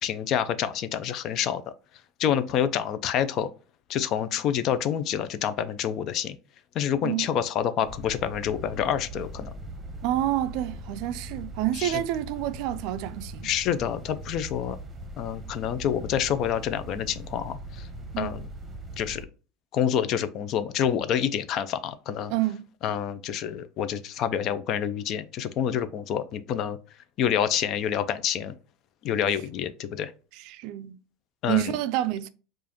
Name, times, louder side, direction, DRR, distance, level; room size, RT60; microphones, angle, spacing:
voice 1, 0.0-1.6 2.2-3.5 3.9-6.4 6.7-9.5 11.8-12.0 13.4-14.8 15.2-17.9 18.2-18.4 19.0-19.2 19.7-22.3 22.8-26.8 27.2-28.5 29.0-30.1 31.4-31.7, left 9 dB, 55° left, 0.4 m, -27 dB
sound 1, 7.8-19.2, right 1 dB, 20° right, 0.8 m, -40 dB
voice 2, 10.0-13.5 18.1-18.3 22.3-22.6 30.4-31.0 31.5-32.3, right 14 dB, 65° right, 0.3 m, -28 dB
4.7 x 2.4 x 2.9 m
supercardioid pair, 105°, 0 cm